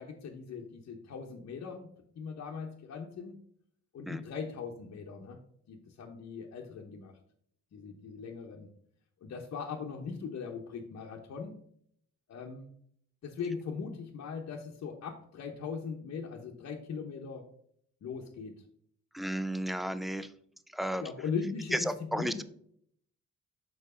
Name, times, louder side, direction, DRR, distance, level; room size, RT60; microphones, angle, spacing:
voice 1, 0.0-3.4 3.9-5.4 5.7-7.1 7.7-8.7 9.2-11.5 12.3-12.7 13.2-17.4 18.0-18.6 21.0-22.4, left 5 dB, 55° left, -1 dB, 1.0 m, -40 dB
voice 2, 19.1-20.3 20.7-21.1 21.7-22.4, equal, ahead, 13 dB, 0.5 m, -33 dB
6.3 x 4.6 x 4.9 m, 0.66 s
cardioid pair, 90°, 30 cm